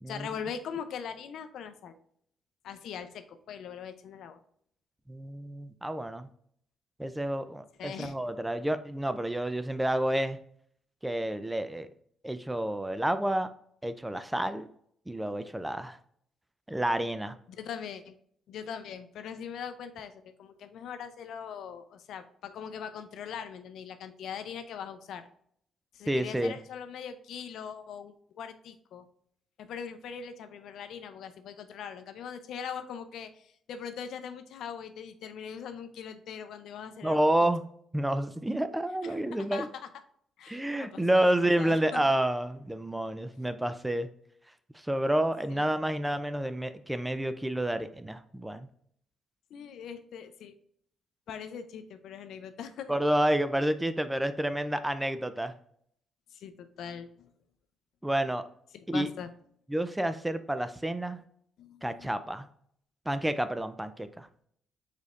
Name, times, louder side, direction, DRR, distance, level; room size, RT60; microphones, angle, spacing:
voice 1, 0.1-2.0 2.6-4.4 7.8-8.1 17.5-18.1 18.5-25.3 25.9-29.0 29.6-37.2 39.0-39.9 40.4-42.0 45.6-45.7 49.5-50.5 51.3-52.9 56.3-57.3 58.9-59.3 61.6-62.1, left 7 dB, 75° left, 9 dB, 0.6 m, -41 dB
voice 2, 5.1-6.3 7.0-10.4 11.0-11.9 12.2-13.5 13.8-14.7 15.1-16.0 16.7-17.4 26.1-26.5 37.0-37.6 37.9-39.7 40.5-44.1 44.8-48.7 52.9-55.5 58.0-58.4 58.9-59.1 59.7-61.2 61.8-62.5 63.1-64.3, right 1 dB, 10° right, 11 dB, 0.4 m, -29 dB
5.0 x 4.1 x 2.5 m, 0.65 s
cardioid pair, 90°, 0 cm